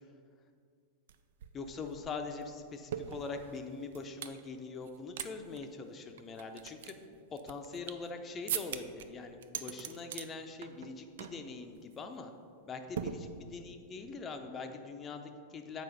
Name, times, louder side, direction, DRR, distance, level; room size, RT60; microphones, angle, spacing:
sound 1, 1.1-1.2 1.4-4.4 4.8-5.3 5.5-5.7 6.2-8.1 8.5-9.1 9.4-10.3 10.6-10.9 11.2-11.4 11.8-12.0 13.0-13.7, right 8 dB, 60° right, 0.4 m, -41 dB
voice 1, 1.5-6.9 7.3-12.3 12.7-15.8, left 4 dB, 25° left, 6 dB, 0.6 m, -43 dB
7.7 x 4.8 x 5.3 m, 2.2 s
figure-of-eight pair, 90°, 0 cm